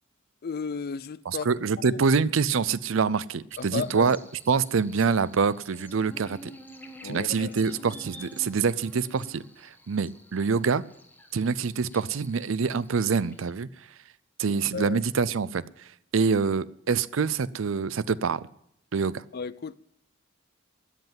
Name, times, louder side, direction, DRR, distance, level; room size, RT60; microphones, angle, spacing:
voice 1, 0.4-2.0 3.6-4.1 7.0-7.6 14.5-15.0 19.3-19.8, left 5 dB, 50° left, 0.4 m, -34 dB
voice 2, 1.3-4.2 4.5-6.5 7.0-10.8 11.3-13.7 14.4-18.5 18.9-19.2, right 5 dB, 70° right, 0.5 m, -26 dB
Buzz, 3.5-13.5, equal, 10° left, 1.2 m, -49 dB
13.5 x 7.9 x 9.1 m
head